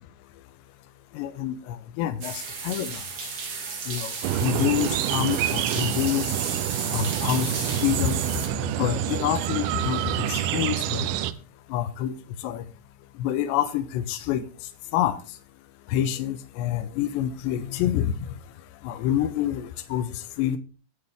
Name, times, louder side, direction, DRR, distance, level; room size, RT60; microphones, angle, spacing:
voice 1, 1.1-3.0 3.9-6.3 6.9-7.5 7.8-8.2 8.6-11.1 11.7-12.1 12.4-12.6 13.2-14.4 14.9-15.2 15.9-18.4 18.8-20.1 20.4-20.6, left 11 dB, 85° left, 10 dB, 3.0 m, -27 dB
sound 1, 2.2-8.5, right 5 dB, 45° right, 2.4 m, -33 dB
sound 2, 4.2-11.3, right 12 dB, 80° right, 2.2 m, -27 dB
19.5 x 6.9 x 3.6 m, 0.36 s
omnidirectional pair, 5.0 m